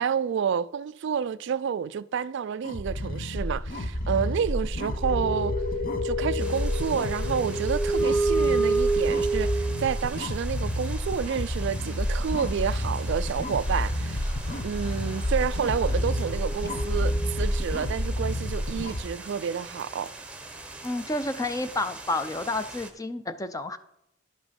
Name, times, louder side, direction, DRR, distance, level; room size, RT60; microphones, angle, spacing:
voice 1, 0.0-5.5 6.0-14.2 14.6-20.1, right 7 dB, 60° right, 0.3 m, -29 dB
sound 1, 2.6-19.0, left 1 dB, 45° left, 1.0 m, -29 dB
sound 2, 4.7-10.1 12.0-12.1 12.3-17.8, right 2 dB, 80° left, 3.4 m, -30 dB
sound 3, 6.4-22.9, right 2 dB, 5° right, 0.9 m, -43 dB
voice 2, 20.8-23.8, left 2 dB, 15° left, 0.6 m, -30 dB
11.0 x 6.0 x 5.2 m
head